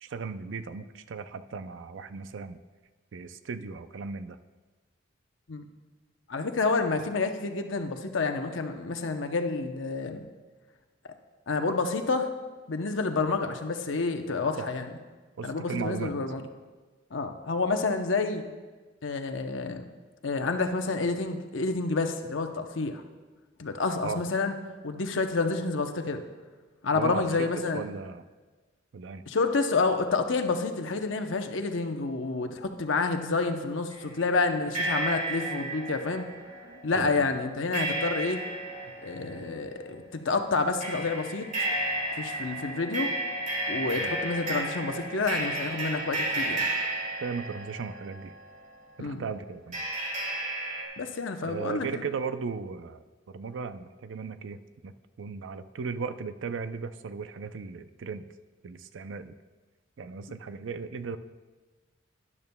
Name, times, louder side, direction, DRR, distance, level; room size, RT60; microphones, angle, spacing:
voice 1, 0.0-2.6 3.1-4.4 14.6-14.7 15.4-16.1 24.0-24.2 26.9-28.2 28.9-29.2 36.1-37.4 43.9-44.1 47.2-48.3 49.0-49.8 51.4-58.3 58.6-59.3 60.0-61.2, right 5 dB, 70° right, 11 dB, 0.4 m, -37 dB
voice 2, 6.3-10.3 11.5-12.3 12.7-14.9 15.4-16.4 17.1-18.5 19.0-19.8 20.2-23.0 23.6-24.5 24.8-26.2 26.8-27.9 29.3-36.3 36.8-38.4 39.0-41.5 42.2-43.1 43.7-46.7 49.0-49.2 51.0-52.0, left 3 dB, 75° left, 6 dB, 0.8 m, -29 dB
sound 1, 33.9-34.0 34.7-48.7 49.7-50.8, right 1 dB, 40° right, 2.3 m, -33 dB
12.0 x 11.0 x 2.2 m, 1.3 s
head